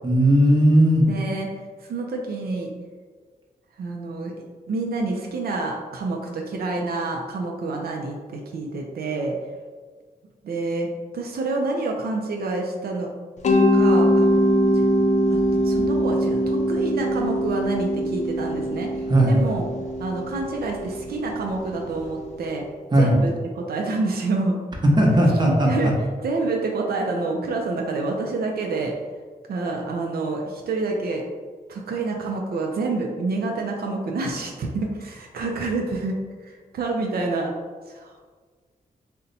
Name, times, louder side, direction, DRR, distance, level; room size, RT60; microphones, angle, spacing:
voice 1, 0.0-1.1 19.1-19.4 22.9-23.1 25.0-25.9, right 1 dB, 30° right, -2 dB, 0.7 m, -17 dB
voice 2, 1.1-1.5 1.8-2.7 3.8-4.3 4.7-9.4 10.4-10.9 11.1-13.1 13.7-14.3 14.7-14.9 15.3-18.9 19.3-19.7 20.0-22.6 23.0-24.6 25.4-25.9 26.2-28.9 29.5-31.2 31.7-36.2 36.4-37.5 37.9-38.3, right 3 dB, 85° right, 1 dB, 0.4 m, -28 dB
Mallet percussion, 13.4-22.2, equal, 50° left, 0.4 m, -22 dB
2.7 x 2.1 x 3.9 m, 1.5 s
wide cardioid pair, 90°, 16 cm